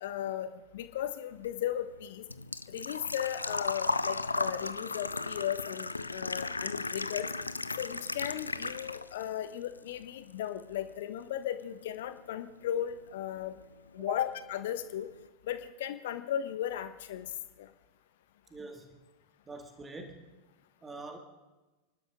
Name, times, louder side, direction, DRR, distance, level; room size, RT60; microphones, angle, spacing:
voice 1, 0.0-2.2 2.7-7.3 7.8-13.6 13.9-15.1 15.4-17.3 17.6-17.7, left 11 dB, 55° left, 10 dB, 1.2 m, -36 dB
Engine / Trickle dribble / Fill (with liquid), 1.3-9.3 9.6-10.6 10.9-11.0 12.9-13.0 13.2-13.5 13.9-14.0 14.2-14.3, left 3 dB, 80° left, 0.5 m, -35 dB
voice 2, 18.5-19.0 19.5-20.3 20.8-21.2, right 2 dB, 15° right, 4 dB, 2.2 m, -44 dB
30.0 x 12.0 x 3.7 m, 1.1 s
figure-of-eight pair, 90°, 0 cm